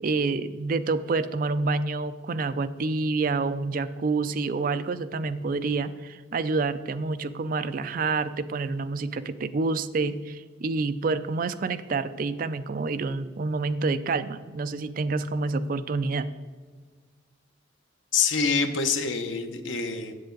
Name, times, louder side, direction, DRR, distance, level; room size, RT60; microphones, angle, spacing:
voice 1, 0.0-16.4, right 3 dB, 45° right, 12 dB, 0.4 m, -28 dB
voice 2, 18.1-20.1, left 5 dB, 90° left, 8 dB, 0.8 m, -26 dB
7.8 x 7.8 x 3.8 m, 1.5 s
head